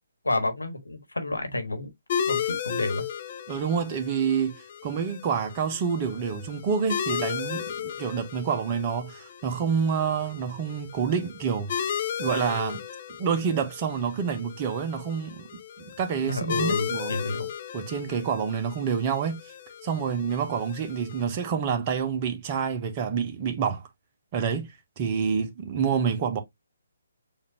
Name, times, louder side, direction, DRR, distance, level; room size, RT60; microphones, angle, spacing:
voice 1, 0.2-1.9 2.3-3.0 16.3-17.5, left 2 dB, 80° left, 1.4 m, -30 dB
sound 1, 2.1-21.2, left 8 dB, 40° left, 0.6 m, -35 dB
voice 2, 3.5-11.7 12.2-12.8 13.2-15.5 15.8-17.2 17.7-19.4 19.8-23.9 24.3-26.4, right 6 dB, 30° right, 1.0 m, -28 dB
7.0 x 2.7 x 2.7 m
figure-of-eight pair, 140°, 0 cm